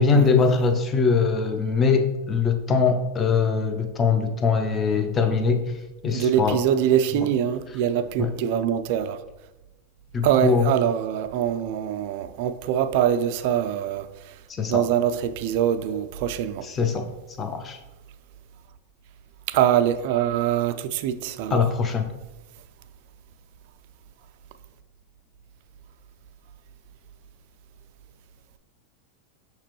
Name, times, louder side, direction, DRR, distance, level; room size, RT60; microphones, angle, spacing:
voice 1, 0.0-5.6 6.0-6.6 8.2-8.3 10.1-10.7 14.6-14.9 16.6-17.1 17.4-17.8 21.5-22.1, left 5 dB, 25° left, 0.5 m, -22 dB
voice 2, 6.1-9.2 10.2-14.1 14.7-16.6 19.5-21.6, right 10 dB, 60° right, 0.3 m, -23 dB
5.9 x 2.9 x 3.0 m
hypercardioid pair, 115°, 0 cm